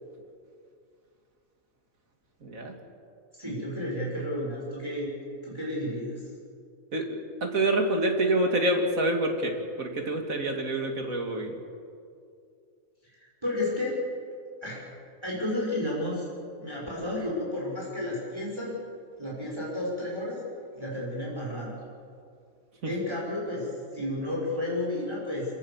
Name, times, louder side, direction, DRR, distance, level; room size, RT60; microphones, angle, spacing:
voice 1, 2.4-2.7 6.9-11.6 22.8-22.9, right 1 dB, 75° right, 3 dB, 2.8 m, -27 dB
voice 2, 3.4-5.1 5.4-6.2 13.0-14.0 14.6-14.8 15.2-16.2 16.6-18.7 19.2-20.4 20.7-21.7 22.8-25.5, left 1 dB, 20° right, -5 dB, 5.7 m, -32 dB
26.5 x 17.5 x 7.3 m, 2.4 s
omnidirectional pair, 1.4 m